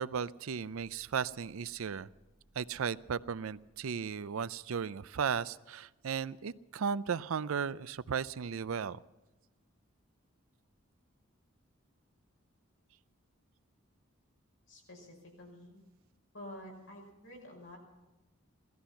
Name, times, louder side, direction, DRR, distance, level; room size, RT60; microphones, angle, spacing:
voice 1, 0.0-2.1 2.6-9.0, right 6 dB, 85° right, 17 dB, 0.5 m, -35 dB
sound 1, 0.7-5.7, right 1 dB, 35° left, 4.9 m, -70 dB
voice 2, 14.7-15.8 16.3-17.8, left 1 dB, 75° left, 0 dB, 5.8 m, -49 dB
17.5 x 14.0 x 5.7 m, 1.1 s
head